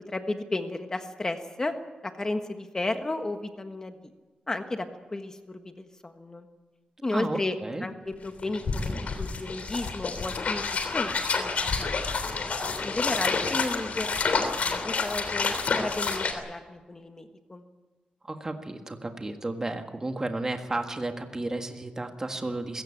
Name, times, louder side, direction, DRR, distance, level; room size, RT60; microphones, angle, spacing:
voice 1, 0.1-1.7 2.0-4.1 4.5-6.5 7.0-10.6 10.9-12.2 12.8-14.2 14.6-17.6, left 2 dB, 25° left, 7 dB, 1.4 m, -33 dB
voice 2, 7.1-7.8 18.2-22.8, right 2 dB, 20° right, 5 dB, 1.6 m, -33 dB
sound 1, 8.1-8.2 8.4-16.3, left 4 dB, 60° left, 3.2 m, -29 dB
21.5 x 16.5 x 8.8 m, 1.2 s
wide cardioid pair, 145°, 3 cm